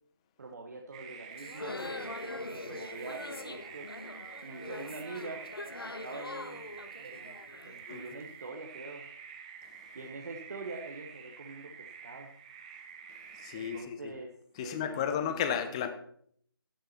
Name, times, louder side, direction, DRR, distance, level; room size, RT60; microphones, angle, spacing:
voice 1, 0.4-3.9 4.4-5.5 5.8-7.4 7.6-9.1 9.9-12.3 13.5-14.3 14.6-15.5, right 3 dB, 45° right, 1.4 m, -45 dB
sound 1, 0.9-13.8, right 7 dB, 20° right, 0.8 m, -48 dB
sound 2, 1.3-8.3, left 2 dB, 75° left, 1.2 m, -43 dB
voice 2, 13.3-14.1 14.6-15.9, left 8 dB, 15° left, 0.7 m, -33 dB
12.5 x 10.5 x 4.4 m
figure-of-eight pair, 155°, 12 cm